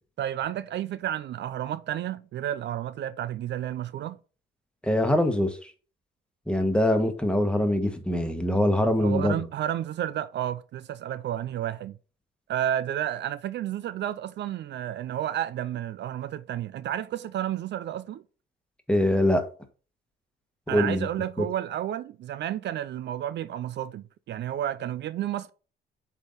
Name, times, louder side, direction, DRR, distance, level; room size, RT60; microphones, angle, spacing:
voice 1, 0.2-4.2 9.0-12.0 12.5-18.2 20.7-25.5, right 11 dB, 60° right, 0.4 m, -31 dB
voice 2, 4.8-5.7 6.5-9.3 18.9-19.4 20.7-21.1, left 1 dB, 5° left, 1.4 m, -23 dB
7.8 x 3.7 x 4.0 m
cardioid pair, 90°, 20 cm